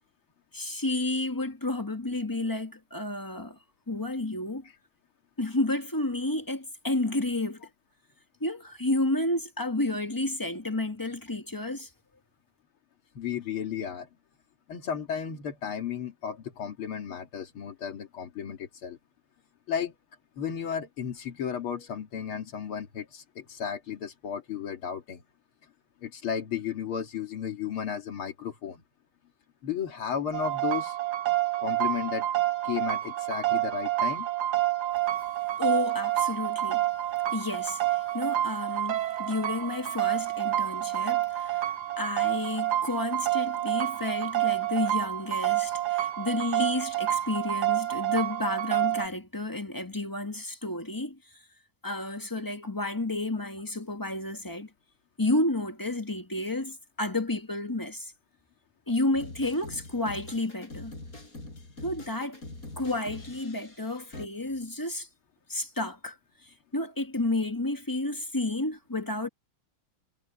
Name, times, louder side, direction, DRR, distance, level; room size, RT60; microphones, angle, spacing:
voice 1, 0.5-3.6 3.9-4.6 5.4-7.6 8.4-11.9 35.6-36.8 37.3-51.2 51.8-54.7 55.2-58.1 58.9-60.9 61.8-62.4 62.8-65.1 65.5-66.2 66.7-69.3, left 2 dB, 10° left, 1.3 m, -31 dB
voice 2, 13.1-14.1 14.7-19.0 19.7-19.9 20.4-25.2 26.0-28.8 29.6-31.0 31.6-32.3 32.6-34.3, left 8 dB, 85° left, 2.9 m, -34 dB
sound 1, 30.3-49.1, right 14 dB, 55° right, 1.6 m, -28 dB
sound 2, 59.1-64.3, left 2 dB, 40° left, 5.7 m, -44 dB
omnidirectional pair, 2.3 m